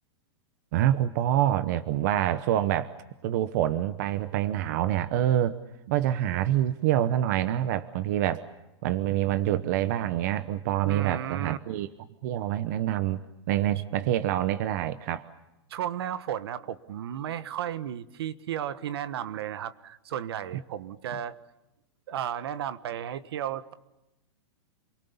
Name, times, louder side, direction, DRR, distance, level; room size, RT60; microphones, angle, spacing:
voice 1, 0.7-2.9 3.2-5.6 5.9-8.4 8.8-11.9 12.2-13.2 13.5-15.3, right 12 dB, 40° right, 11 dB, 0.9 m, -26 dB
voice 2, 10.8-11.6 15.7-21.4 22.1-23.7, right 10 dB, 60° right, 13 dB, 1.3 m, -34 dB
28.5 x 22.5 x 7.1 m, 0.96 s
supercardioid pair, 165°, 14 cm